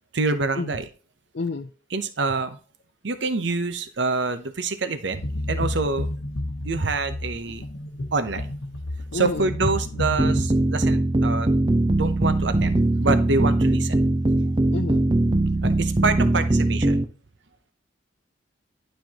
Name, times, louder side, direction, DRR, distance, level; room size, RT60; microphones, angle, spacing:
voice 1, 0.1-0.8 1.9-2.6 3.0-5.2 5.5-6.1 6.6-7.6 8.1-8.5 9.1-11.5 11.9-12.7 13.0-13.9 15.6-17.0, right 3 dB, 70° right, 10 dB, 0.8 m, -26 dB
voice 2, 1.3-1.7 9.1-9.5 14.7-15.1, left 3 dB, 60° left, 4 dB, 0.5 m, -29 dB
sound 1, 5.2-10.4, left 1 dB, 90° left, 1.0 m, -30 dB
sound 2, 10.2-17.0, right 2 dB, 25° right, 0.5 m, -21 dB
11.5 x 4.5 x 2.9 m, 0.38 s
head